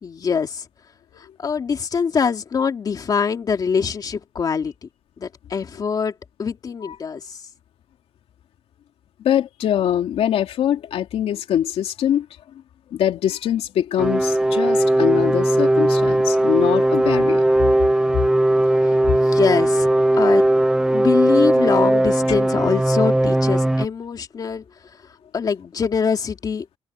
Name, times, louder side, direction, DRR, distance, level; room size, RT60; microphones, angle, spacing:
voice 1, 0.0-0.7 1.2-4.9 5.2-6.1 6.4-7.4 18.8-19.9 20.1-20.4 20.9-24.6 25.3-26.7, left 6 dB, 40° left, 2.6 m, -23 dB
voice 2, 9.2-12.3 12.9-17.4, left 10 dB, 80° left, 3.0 m, -23 dB
sound 1, 14.0-23.9, right 1 dB, 5° right, 0.8 m, -18 dB
cardioid pair, 145°, 10 cm